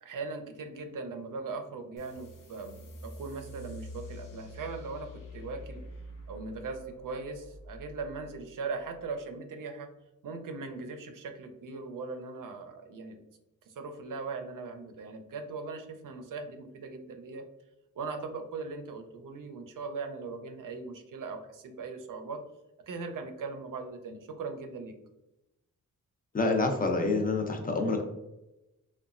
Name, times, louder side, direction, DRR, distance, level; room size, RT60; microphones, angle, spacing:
voice 1, 0.0-5.8 6.3-9.9 10.2-13.2 13.7-17.4 18.0-22.4 22.9-24.9, right 4 dB, 75° right, 6 dB, 0.5 m, -39 dB
sound 1, 2.0-9.1, left 1 dB, 75° left, 0.6 m, -47 dB
voice 2, 26.3-28.0, left 3 dB, 25° left, 3 dB, 0.5 m, -27 dB
2.9 x 2.2 x 2.4 m, 0.94 s
cardioid pair, 80°, 32 cm